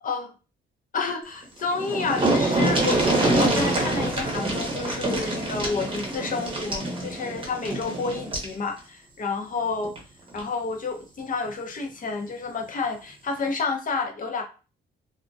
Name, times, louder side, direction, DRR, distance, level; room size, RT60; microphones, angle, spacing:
voice 1, 0.9-9.9 10.3-14.4, left 4 dB, 45° left, 3 dB, 0.6 m, -30 dB
sound 1, 1.4-1.5 1.7-8.5 9.8-10.0 10.4-10.5, right 2 dB, 25° right, 0.8 m, -25 dB
2.3 x 2.1 x 2.5 m, 0.33 s
cardioid pair, 90°, 20 cm